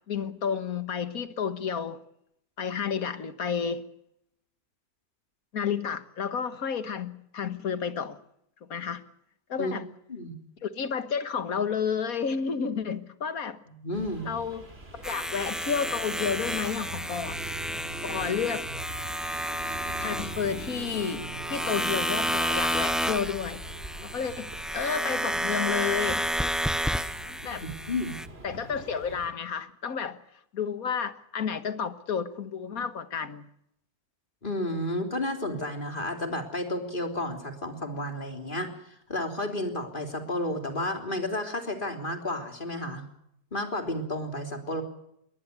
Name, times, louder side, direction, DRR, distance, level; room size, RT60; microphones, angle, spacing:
voice 1, 0.1-2.0 2.6-3.8 5.5-8.2 8.7-9.0 9.5-9.9 10.6-13.6 14.3-14.7 14.9-17.4 18.0-18.7 20.0-23.6 24.0-26.2 27.3-27.6 28.4-30.2 30.5-33.5, left 6 dB, 70° left, 1.9 m, -31 dB
voice 2, 13.7-14.3 27.6-28.2 34.4-38.7 39.1-43.0 43.5-44.8, left 1 dB, 30° left, 3.7 m, -32 dB
sound 1, 13.9-29.3, right 2 dB, 40° right, 3.4 m, -43 dB
sound 2, 15.0-28.3, equal, ahead, 0.4 m, -31 dB
22.0 x 19.0 x 6.9 m
omnidirectional pair, 1.6 m